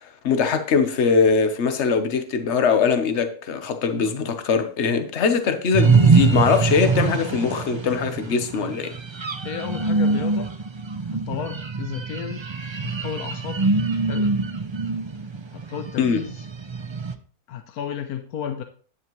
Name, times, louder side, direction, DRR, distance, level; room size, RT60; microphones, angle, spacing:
voice 1, 0.0-8.9 16.0-16.2, left 5 dB, 50° left, 1.2 m, -21 dB
sound 1, 5.7-17.1, right 4 dB, 50° right, 0.3 m, -23 dB
voice 2, 9.4-10.5 11.1-12.4 12.8-13.6 14.0-14.4 15.5-16.5 17.5-18.6, left 8 dB, 80° left, 1.3 m, -33 dB
10.0 x 9.6 x 3.1 m
omnidirectional pair, 1.6 m